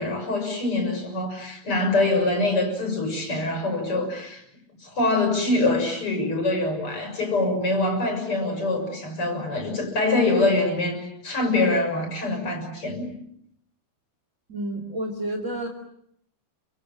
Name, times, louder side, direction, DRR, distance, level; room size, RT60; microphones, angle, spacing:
voice 1, 0.0-4.4 4.8-13.1, left 2 dB, 35° left, 5 dB, 7.2 m, -24 dB
voice 2, 14.5-15.7, right 1 dB, 25° right, 4 dB, 2.5 m, -30 dB
30.0 x 26.0 x 7.3 m, 0.70 s
omnidirectional pair, 4.4 m